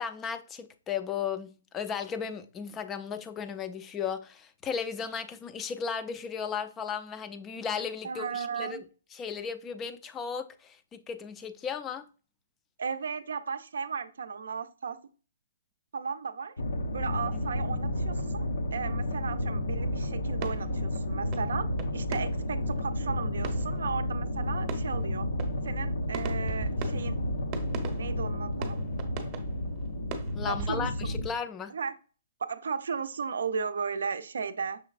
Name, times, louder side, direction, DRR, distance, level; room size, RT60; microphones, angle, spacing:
voice 1, 0.0-8.8 9.1-12.1 17.2-17.4 30.3-31.7, left 7 dB, 15° left, 0.3 m, -35 dB
voice 2, 8.0-8.8 12.8-15.0 15.9-16.6 16.9-18.5 18.7-21.7 21.9-25.3 25.6-27.2 28.0-28.8 30.4-30.9 31.7-31.9 32.4-34.8, right 6 dB, 75° right, 0.4 m, -35 dB
sound 1, 16.6-31.3, left 1 dB, 80° left, 0.6 m, -31 dB
sound 2, 19.5-20.0 20.3-21.1 21.3-31.2, right 6 dB, 30° right, 0.8 m, -42 dB
6.0 x 3.2 x 2.4 m
hypercardioid pair, 150°, 0 cm